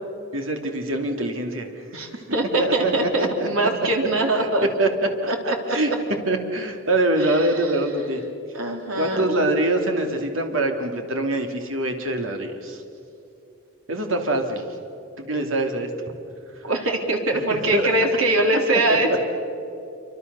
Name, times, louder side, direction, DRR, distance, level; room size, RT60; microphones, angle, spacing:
voice 1, 0.3-1.7 2.6-3.5 4.4-4.5 4.8-4.9 5.2-5.3 5.7-5.9 6.3-8.2 8.9-12.8 13.9-14.6 15.2-15.9 17.7-17.9, right 1 dB, 75° right, 4 dB, 2.7 m, -24 dB
voice 2, 1.9-4.7 5.3-5.8 7.2-7.7 8.5-9.3 16.6-19.2, right 2 dB, 90° right, 2 dB, 3.8 m, -23 dB
27.0 x 25.0 x 6.9 m, 2.9 s
head